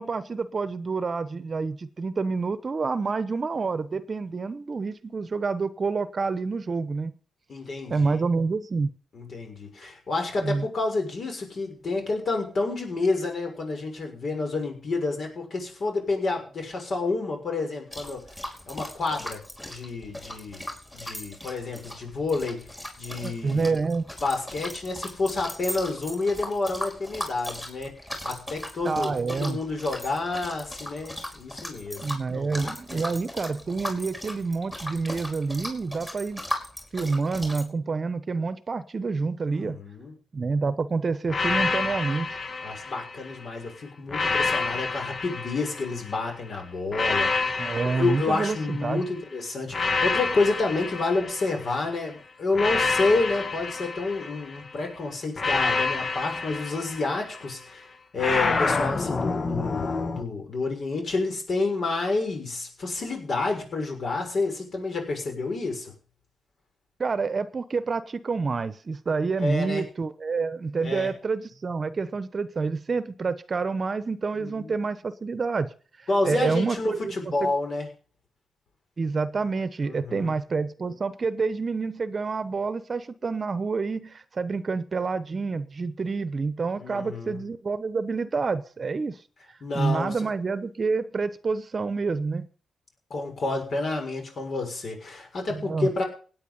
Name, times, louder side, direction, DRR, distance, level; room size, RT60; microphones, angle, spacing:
voice 1, 0.0-7.1 7.9-8.9 10.4-10.6 23.2-24.0 28.8-29.6 32.0-36.4 36.9-39.8 40.3-42.4 47.6-49.0 67.0-75.7 76.2-77.5 79.0-89.2 89.7-92.5 95.5-95.9, right 4 dB, 40° right, 1.0 m, -28 dB
voice 2, 7.5-8.2 9.1-18.2 18.7-23.7 24.2-27.9 28.2-33.2 39.5-40.1 42.6-57.8 58.1-65.9 69.4-69.8 70.8-71.1 74.4-74.9 76.1-77.9 79.8-80.3 86.8-87.4 89.6-90.2 93.1-96.0, left 3 dB, 55° left, 6.5 m, -29 dB
sound 1, 17.9-37.6, left 1 dB, 15° left, 5.1 m, -38 dB
sound 2, 41.3-43.4 44.1-46.2 46.9-49.1 49.7-51.9 52.5-54.7 55.4-57.5 58.2-60.2, left 4 dB, 40° left, 1.2 m, -28 dB
17.0 x 9.6 x 5.5 m
cardioid pair, 90°, 0 cm